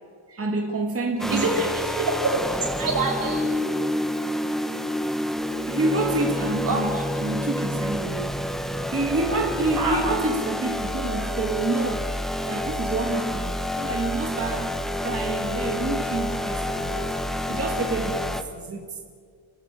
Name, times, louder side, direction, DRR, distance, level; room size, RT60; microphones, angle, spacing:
voice 1, 0.3-1.7 5.7-8.3 8.9-12.1 12.5-17.2 17.5-19.0, right 2 dB, 30° right, 2.0 m, -28 dB
sound 1, 1.2-18.4, left 1 dB, ahead, 1.0 m, -28 dB
voice 2, 1.3-2.4 2.8-3.5 6.7-7.0 9.8-10.0, right 3 dB, 45° right, 6.1 m, -25 dB
30.0 x 13.0 x 9.0 m
wide cardioid pair, 150°, 47 cm